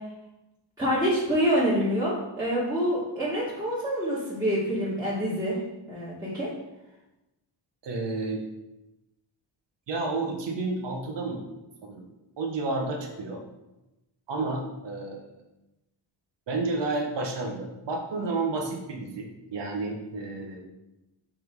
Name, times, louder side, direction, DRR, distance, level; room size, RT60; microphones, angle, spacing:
voice 1, 0.8-5.6 5.9-6.5, equal, 10° right, -10 dB, 1.8 m, -26 dB
voice 2, 7.8-8.4 9.9-11.4 11.8-12.0 12.4-13.4 14.3-15.3 16.5-20.6, right 3 dB, 65° right, 2 dB, 1.3 m, -31 dB
5.9 x 3.7 x 4.6 m, 0.97 s
cardioid pair, 120°, 46 cm